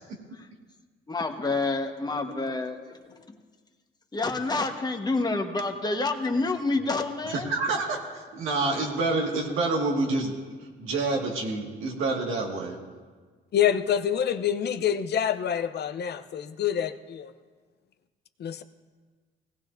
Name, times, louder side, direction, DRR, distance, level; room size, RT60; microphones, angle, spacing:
voice 1, 1.1-3.0 4.1-7.5, left 3 dB, 20° left, 4 dB, 1.2 m, -28 dB
voice 2, 7.3-10.3 10.8-12.8, right 3 dB, 90° right, -1 dB, 1.9 m, -27 dB
voice 3, 13.5-17.3 18.4-18.6, left 9 dB, 55° left, 10 dB, 0.7 m, -26 dB
18.0 x 16.0 x 2.6 m, 1.5 s
cardioid pair, 90°, 20 cm